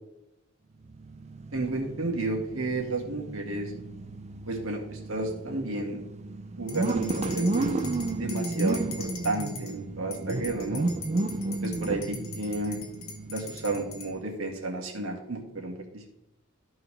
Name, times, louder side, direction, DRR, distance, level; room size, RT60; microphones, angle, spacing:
sound 1, 0.8-14.2, right 2 dB, 35° right, 0.4 m, -33 dB
voice 1, 1.5-3.7 4.5-6.0 6.6-7.8 8.2-10.9 11.6-12.8 13.3-16.1, right 2 dB, 75° right, 1 dB, 2.0 m, -32 dB
sound 2, 6.7-9.7 10.1-14.1, left 5 dB, 75° left, 1.5 m, -42 dB
14.0 x 4.7 x 3.3 m, 0.87 s
head